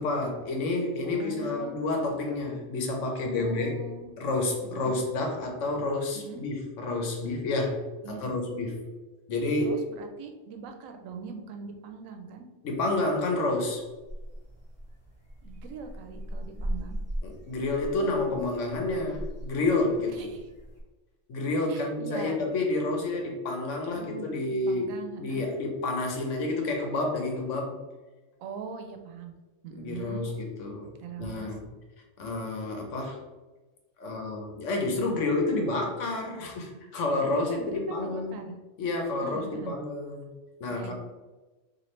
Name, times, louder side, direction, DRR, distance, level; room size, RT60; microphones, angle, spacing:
voice 1, 0.0-3.7 4.2-7.8 8.1-8.8 9.3-9.8 12.6-13.8 17.2-20.3 21.3-24.9 25.2-27.8 29.8-30.9 31.2-31.6 32.2-33.2 34.0-38.4 38.8-40.3 40.6-40.9, left 2 dB, 70° left, 2 dB, 1.1 m, -29 dB
voice 2, 1.0-1.7 3.4-4.1 4.6-5.0 6.1-6.4 8.0-8.3 9.6-12.5 15.4-17.0 20.1-20.5 21.7-22.4 24.0-24.3 24.7-25.5 28.4-29.3 29.6-30.3 31.0-31.6 37.3-38.6 39.2-39.7 40.7-40.9, right 5 dB, 85° right, 5 dB, 1.0 m, -41 dB
sound 1, 13.8-20.8, equal, 5° right, 1.3 m, -39 dB
4.2 x 2.7 x 3.1 m, 1.2 s
omnidirectional pair, 1.3 m